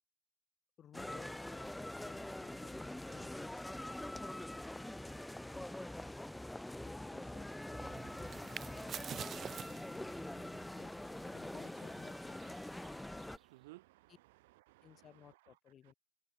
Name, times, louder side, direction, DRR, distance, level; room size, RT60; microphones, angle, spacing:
voice 1, 0.8-3.6 6.8-7.6 9.7-10.9 11.2-12.6 14.1-14.2 14.8-15.9, left 9 dB, 40° left, 7.4 m, -60 dB
sound 1, 0.9-13.4, left 1 dB, 5° left, 0.5 m, -44 dB
sound 2, 7.7-13.5, right 8 dB, 35° right, 1.3 m, -50 dB
voice 2, 13.0-14.1 14.6-15.0 15.9-16.0, right 20 dB, 65° right, 0.5 m, -59 dB
figure-of-eight pair, 65°, 0 cm